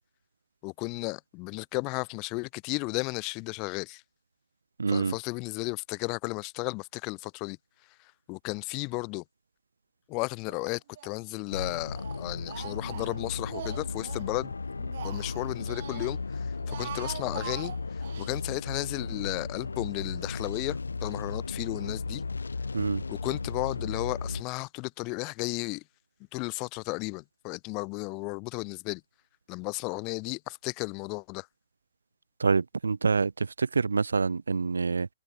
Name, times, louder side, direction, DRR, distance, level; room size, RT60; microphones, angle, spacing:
voice 1, 0.6-4.0 4.9-7.6 8.0-9.2 10.1-14.5 15.0-22.2 23.1-25.8 26.3-29.0 29.5-31.5, left 29 dB, 35° left, 1.8 m, -34 dB
voice 2, 4.8-5.1 22.7-23.0 32.4-35.1, right 4 dB, 85° right, 1.0 m, -26 dB
Speech, 10.5-11.2 11.5-14.3 14.7-16.2 16.5-18.3, right 11 dB, 55° right, 2.5 m, -43 dB
sound 1, 11.5-24.4, left 4 dB, 85° left, 5.9 m, -35 dB
hypercardioid pair, 125°, 0 cm